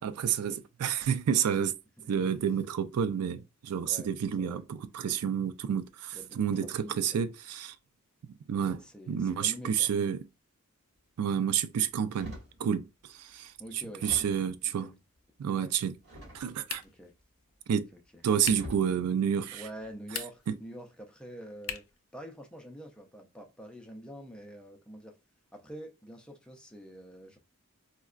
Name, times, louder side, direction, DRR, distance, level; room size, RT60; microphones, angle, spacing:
voice 1, 0.0-1.7 2.1-7.7 8.5-10.2 11.2-14.9 15.4-16.0 16.3-16.8 17.7-17.9 18.2-19.6 20.5-20.6, right 8 dB, 90° right, 0.3 m, -30 dB
voice 2, 6.1-7.2 8.5-9.9 13.6-14.4 14.6-15.0 15.5-15.8 16.8-17.1 17.7-18.2 19.5-21.8 22.1-25.2 25.5-27.4, equal, 5° left, 0.4 m, -47 dB
sound 1, 12.1-12.6 13.3-13.4 14.0-14.6 16.0-16.7 17.9-18.0 18.5-19.0 19.6-19.9, left 1 dB, 50° right, 1.7 m, -45 dB
sound 2, 16.6-17.1 18.4-18.8 20.0-20.6 21.6-22.0, left 9 dB, 60° left, 0.4 m, -40 dB
4.5 x 2.1 x 2.4 m
head